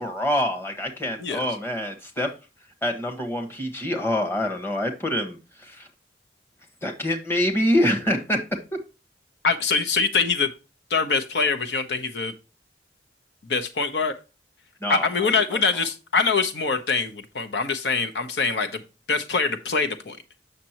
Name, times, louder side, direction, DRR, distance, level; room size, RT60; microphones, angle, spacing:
voice 1, 0.0-2.3 2.8-5.9 6.8-8.4 14.8-15.6, left 1 dB, 15° left, 3 dB, 1.3 m, -26 dB
voice 2, 9.4-10.5 10.9-12.3 13.5-14.1 14.9-18.8 19.1-20.2, left 4 dB, 80° left, 7 dB, 0.9 m, -24 dB
7.4 x 6.7 x 2.9 m, 0.30 s
head